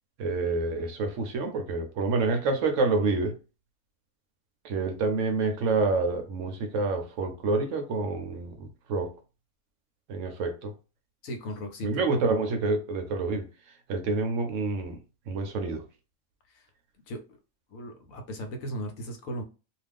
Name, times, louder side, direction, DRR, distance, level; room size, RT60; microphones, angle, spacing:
voice 1, 0.2-3.4 4.6-9.1 10.1-10.7 11.8-13.5 13.9-15.0 15.3-15.8, right 3 dB, 70° right, 0.8 m, -28 dB
voice 2, 11.2-12.0 16.5-16.6 17.1-17.2 17.7-19.4, equal, 70° left, 1.0 m, -37 dB
2.4 x 2.4 x 3.4 m
omnidirectional pair, 1.5 m